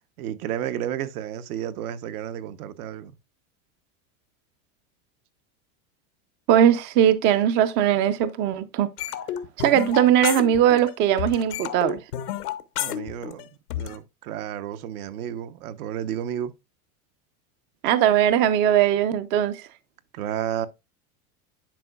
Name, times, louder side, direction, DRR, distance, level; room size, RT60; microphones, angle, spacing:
voice 1, 0.2-3.1 12.8-13.5 13.7-16.5 20.1-20.7, right 10 dB, 75° right, 0.9 m, -32 dB
voice 2, 6.5-8.9 9.6-12.0 17.8-19.6, right 10 dB, 25° right, 0.3 m, -20 dB
sound 1, 9.0-10.9 11.2-14.0, left 12 dB, 90° left, 1.0 m, -31 dB
10.5 x 4.5 x 2.2 m
supercardioid pair, 135°, 44 cm